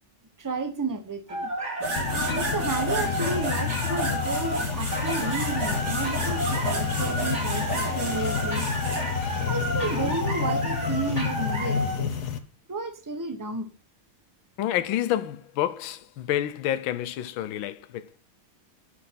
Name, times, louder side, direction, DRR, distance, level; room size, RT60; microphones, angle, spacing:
voice 1, 0.4-1.5 2.1-8.7 9.5-12.2 12.7-13.7, right 3 dB, 15° right, 0.8 m, -32 dB
sound 1, 1.3-12.0, right 1 dB, 30° right, 3.6 m, -32 dB
sound 2, 1.8-9.0, right 2 dB, 50° right, 3.8 m, -33 dB
sound 3, 2.0-12.4, left 7 dB, 55° left, 1.5 m, -30 dB
voice 2, 9.8-10.1 14.6-18.2, left 12 dB, 70° left, 1.5 m, -29 dB
12.5 x 6.5 x 5.9 m
omnidirectional pair, 2.3 m